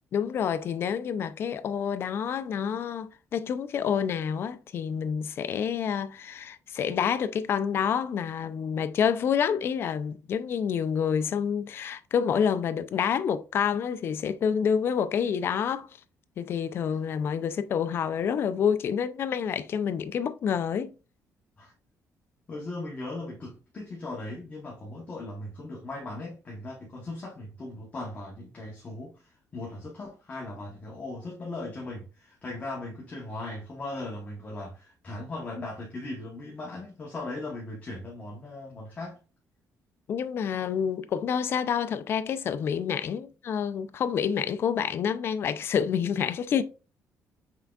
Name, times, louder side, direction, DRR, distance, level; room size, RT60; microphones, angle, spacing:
voice 1, 0.1-15.9 16.4-20.9 40.1-46.6, left 7 dB, 45° left, 0.4 m, -28 dB
voice 2, 22.5-39.2, left 2 dB, 25° left, 1.0 m, -38 dB
5.8 x 3.6 x 2.3 m
cardioid pair, 175°, 6 cm